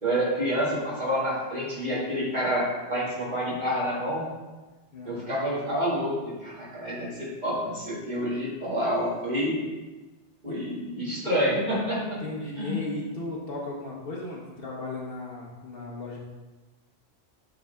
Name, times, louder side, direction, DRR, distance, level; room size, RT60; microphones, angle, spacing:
voice 1, 0.0-4.2 5.1-9.6 10.4-12.2 12.6-12.8, equal, 40° right, -8 dB, 2.2 m, -28 dB
voice 2, 4.9-5.4 10.5-10.6 11.2-11.3 12.2-16.2, left 2 dB, 55° left, -4 dB, 1.1 m, -36 dB
7.8 x 4.0 x 3.5 m, 1.2 s
omnidirectional pair, 1.2 m